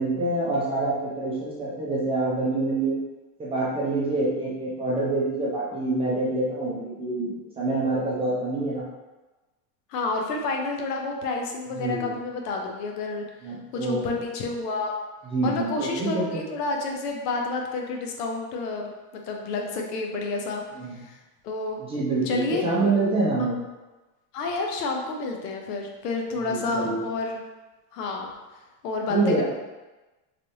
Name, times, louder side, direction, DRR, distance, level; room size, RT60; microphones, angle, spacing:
voice 1, 0.0-3.0 3.4-7.3 7.6-8.8 11.8-12.1 13.4-14.1 15.2-16.4 20.7-20.9 21.8-23.6 26.5-27.0 29.1-29.4, right 2 dB, 15° right, -7 dB, 0.5 m, -26 dB
voice 2, 9.9-13.2 13.7-15.0 15.4-20.6 21.0-21.2 21.4-21.8 22.3-22.6 23.4-23.5 24.3-27.4 27.9-28.3 28.8-29.4, left 3 dB, 85° left, 1 dB, 0.8 m, -29 dB
3.3 x 3.0 x 2.6 m, 1.1 s
supercardioid pair, 145°, 46 cm